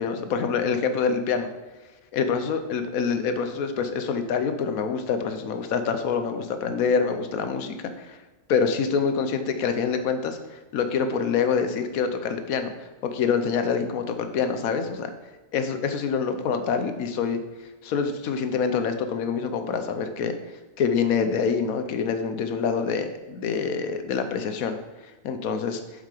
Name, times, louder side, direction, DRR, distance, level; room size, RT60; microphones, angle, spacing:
voice 1, 0.0-1.5 2.1-8.2 8.5-12.7 13.1-15.1 15.5-17.4 17.8-20.3 20.8-24.8 25.2-25.8, left 6 dB, 90° left, 8 dB, 1.2 m, -26 dB
7.4 x 5.5 x 4.9 m, 1.2 s
omnidirectional pair, 1.4 m